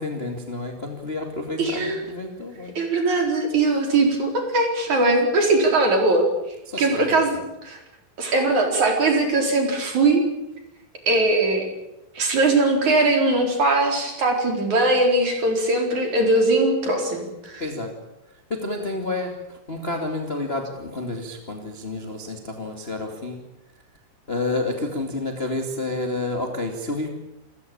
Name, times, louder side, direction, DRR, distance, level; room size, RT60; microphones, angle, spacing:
voice 1, 0.0-2.7 6.7-7.2 17.6-17.9 18.5-19.3 19.7-23.4 24.3-27.1, left 2 dB, 30° left, 3 dB, 1.0 m, -29 dB
voice 2, 1.6-2.0 2.7-6.3 6.8-7.3 7.6-7.8 8.2-10.2 11.1-11.7 12.1-17.6, right 2 dB, 40° right, 3 dB, 5.2 m, -20 dB
29.0 x 15.5 x 8.8 m, 0.91 s
omnidirectional pair, 5.6 m